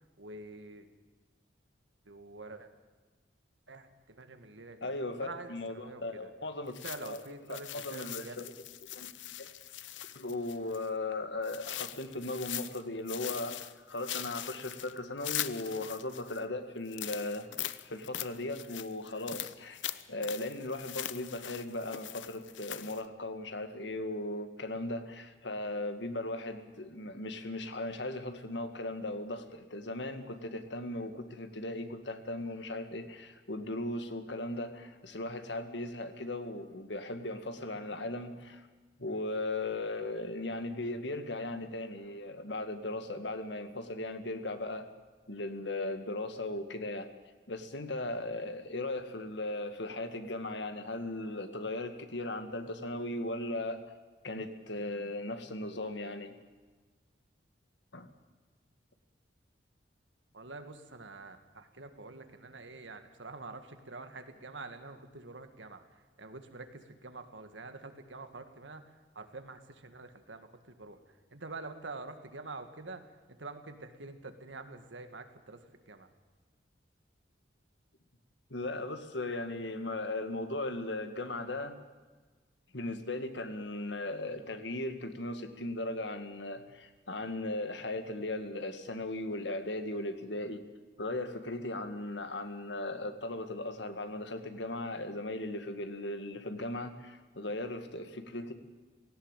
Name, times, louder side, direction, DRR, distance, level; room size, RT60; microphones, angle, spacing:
voice 1, 0.2-0.9 2.1-2.7 3.7-6.3 6.7-8.4 60.3-71.0 71.3-73.0 73.4-76.1, right 3 dB, 90° right, 8 dB, 1.9 m, -46 dB
voice 2, 4.8-6.7 7.0-7.2 7.5-8.5 8.9-9.1 9.4-9.5 10.2-17.5 17.9-38.7 39.0-44.9 45.3-47.1 47.5-53.8 54.2-56.4 57.9-58.1 78.5-81.8 82.7-90.6 91.0-98.5, left 2 dB, 75° left, 8 dB, 1.9 m, -37 dB
sound 1, 6.7-10.9 11.4-12.8 13.1-16.4 16.9-23.1, left 12 dB, 90° left, 0.8 m, -41 dB
17.5 x 17.0 x 9.1 m, 1.3 s
head